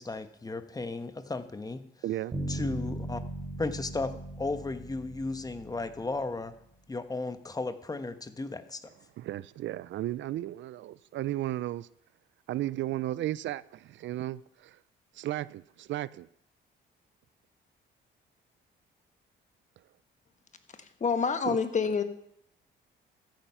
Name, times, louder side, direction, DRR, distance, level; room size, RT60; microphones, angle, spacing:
voice 1, 0.0-1.8 2.5-3.2 3.6-4.1 4.4-6.5 6.9-8.9, left 3 dB, 20° left, 1.1 m, -35 dB
voice 2, 2.0-2.3 9.2-11.9 12.5-14.8 15.2-16.3 21.5-21.6, right 14 dB, 70° right, 0.4 m, -34 dB
Bass guitar, 2.3-6.3, right 2 dB, 30° right, 5.1 m, -38 dB
voice 3, 21.0-22.0, left 5 dB, 35° left, 1.4 m, -27 dB
14.5 x 9.0 x 5.6 m
cardioid pair, 90°, 20 cm